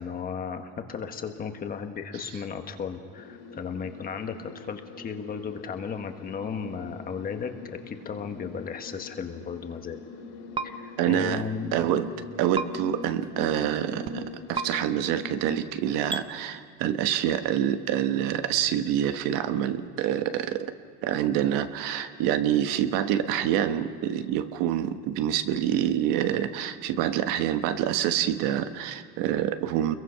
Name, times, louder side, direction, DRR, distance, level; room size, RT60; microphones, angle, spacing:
voice 1, 0.0-10.0 10.6-11.8, left 6 dB, 25° left, 6 dB, 1.3 m, -35 dB
sound 1, 3.1-15.6, left 4 dB, 65° left, 2.8 m, -43 dB
sound 2, 10.5-10.7 12.5-12.7 14.5-14.7 16.1-16.2, right 5 dB, 15° right, 0.5 m, -29 dB
voice 2, 11.0-12.1 12.4-20.7 21.0-29.9, right 10 dB, 65° right, 9 dB, 1.3 m, -26 dB
29.0 x 22.5 x 5.8 m, 2.3 s
cardioid pair, 165°, 35 cm